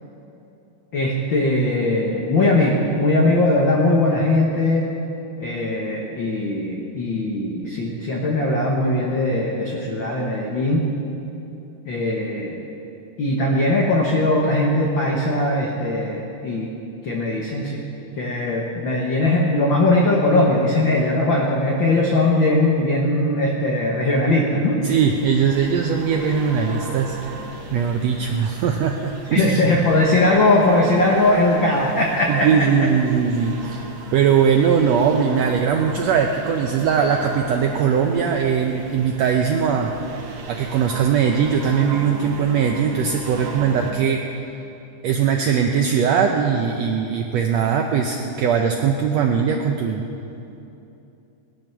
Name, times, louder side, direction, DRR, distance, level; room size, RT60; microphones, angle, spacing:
voice 1, 0.9-4.9 5.4-10.9 11.8-12.6 13.2-16.7 17.0-17.8 18.2-24.8 29.3-32.5, left 2 dB, 50° left, -2 dB, 1.5 m, -20 dB
sound 1, 24.8-43.9, right 3 dB, 55° right, 1.5 m, -37 dB
voice 2, 24.8-27.2 27.7-29.6 32.3-33.8 34.1-39.9 40.5-44.2 45.0-50.1, right 7 dB, 75° right, 2 dB, 1.7 m, -20 dB
18.0 x 11.0 x 6.0 m, 2.8 s
omnidirectional pair, 3.6 m